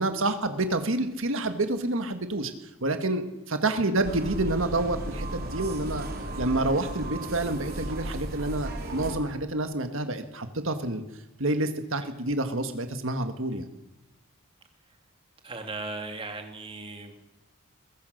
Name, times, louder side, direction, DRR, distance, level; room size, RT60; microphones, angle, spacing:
voice 1, 0.0-2.5 2.8-6.1 6.4-11.0 11.4-13.7, right 2 dB, 60° right, 7 dB, 1.7 m, -28 dB
sound 1, 4.0-9.2, right 1 dB, 45° right, 3.9 m, -35 dB
voice 2, 15.4-17.2, right 3 dB, 25° right, 4 dB, 2.5 m, -37 dB
23.0 x 21.5 x 6.6 m, 1.0 s
head